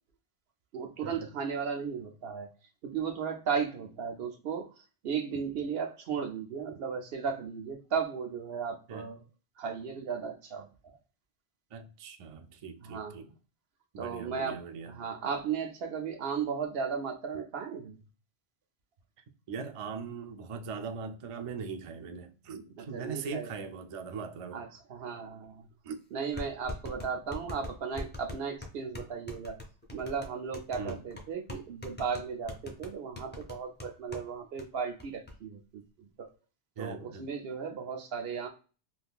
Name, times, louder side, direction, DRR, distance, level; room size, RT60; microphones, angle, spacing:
voice 1, 0.7-2.5 2.8-4.7 5.0-9.2 9.6-11.0 12.8-13.2 14.0-14.6 14.9-18.0 22.8-23.5 24.5-25.6 26.1-29.6 29.9-35.8 36.2-36.3 36.8-38.5, right 6 dB, 70° right, 0.8 m, -35 dB
voice 2, 11.7-13.3 13.9-14.9 19.5-24.6 25.8-26.0 30.8-31.0 36.8-37.3, right 5 dB, 55° right, 0.4 m, -40 dB
sound 1, 25.4-25.5 26.4-34.3 34.6-34.7 35.0-35.3, left 2 dB, 15° left, 0.4 m, -42 dB
3.5 x 2.6 x 2.3 m
omnidirectional pair, 1.1 m